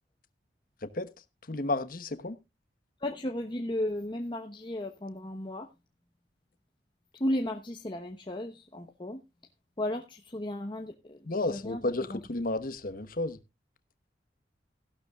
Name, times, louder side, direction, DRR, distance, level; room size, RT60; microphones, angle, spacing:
voice 1, 1.4-2.4 11.2-13.4, left 2 dB, 50° left, 1.1 m, -32 dB
voice 2, 3.0-5.7 7.1-9.2 9.8-11.8 12.1-12.2, left 1 dB, 25° left, 0.9 m, -34 dB
15.5 x 12.0 x 2.3 m
head